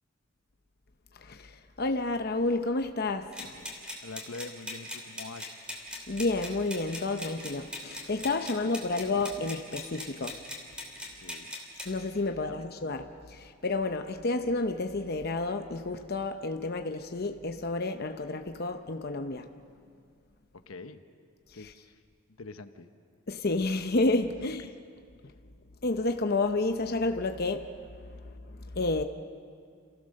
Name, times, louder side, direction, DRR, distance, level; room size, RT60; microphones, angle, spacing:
voice 1, 1.2-3.6 6.1-10.4 11.9-19.5 21.6-21.7 23.3-24.7 25.8-27.7 28.0-29.0, left 2 dB, 50° left, 0.8 m, -30 dB
sound 1, 3.3-11.9, left 1 dB, 5° right, 2.8 m, -41 dB
voice 2, 4.0-5.5 11.1-11.5 12.2-12.7 20.7-21.0 21.5-22.0 22.4-22.9, left 3 dB, 80° left, 1.0 m, -44 dB
29.0 x 16.0 x 6.5 m
head